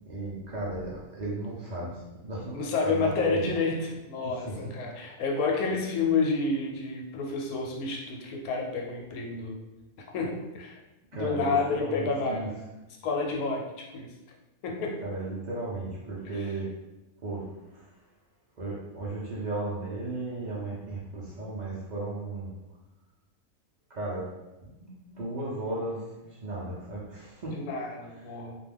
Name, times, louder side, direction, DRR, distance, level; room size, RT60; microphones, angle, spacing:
voice 1, 0.1-3.5 4.2-4.7 11.1-12.5 15.0-16.7 17.2-18.0 18.6-22.5 23.9-24.3 24.6-27.6 28.2-28.3, right 2 dB, 60° right, -6 dB, 0.4 m, -35 dB
voice 2, 2.5-9.6 10.1-10.8 11.1-12.5 13.0-14.1 14.6-15.0 27.5-28.6, left 4 dB, 85° left, 1 dB, 1.1 m, -29 dB
2.4 x 2.2 x 3.3 m, 1.0 s
omnidirectional pair, 1.5 m